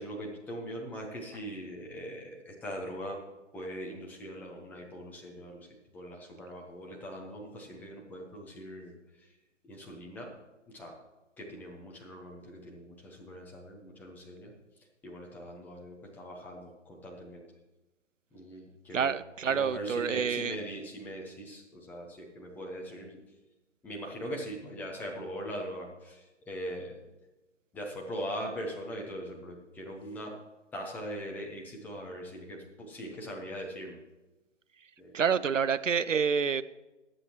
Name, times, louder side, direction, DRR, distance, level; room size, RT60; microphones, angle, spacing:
voice 1, 0.0-3.2 3.5-9.3 9.6-10.3 10.7-11.0 11.4-14.5 15.0-17.5 18.3-19.1 19.5-23.2 23.8-27.0 27.7-30.4 30.7-34.0 35.0-35.1, equal, 5° left, -1 dB, 1.0 m, -41 dB
voice 2, 18.9-20.6 35.1-36.6, right 6 dB, 85° right, 15 dB, 0.6 m, -28 dB
22.5 x 7.7 x 3.1 m, 1.1 s
figure-of-eight pair, 135°, 37 cm